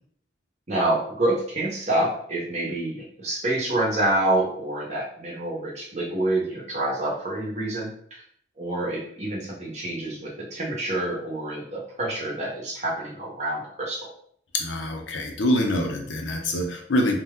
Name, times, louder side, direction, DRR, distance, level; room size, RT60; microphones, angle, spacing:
voice 1, 0.7-8.2 8.6-14.1, right 1 dB, 40° right, -3 dB, 0.9 m, -27 dB
voice 2, 14.5-17.2, left 1 dB, 90° left, 3 dB, 0.6 m, -25 dB
2.8 x 2.2 x 3.5 m, 0.63 s
head